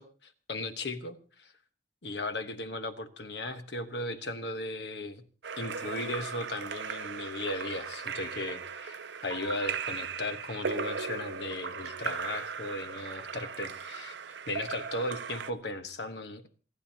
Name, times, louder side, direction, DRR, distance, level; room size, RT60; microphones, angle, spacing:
voice 1, 0.0-1.5 2.0-5.2 5.6-14.1 14.5-16.5, left 2 dB, 70° left, 8 dB, 1.2 m, -37 dB
Splash splatter / Drip / Trickle dribble, 5.4-15.5, right 6 dB, 80° right, 0.7 m, -37 dB
27.5 x 11.0 x 2.9 m, 0.38 s
head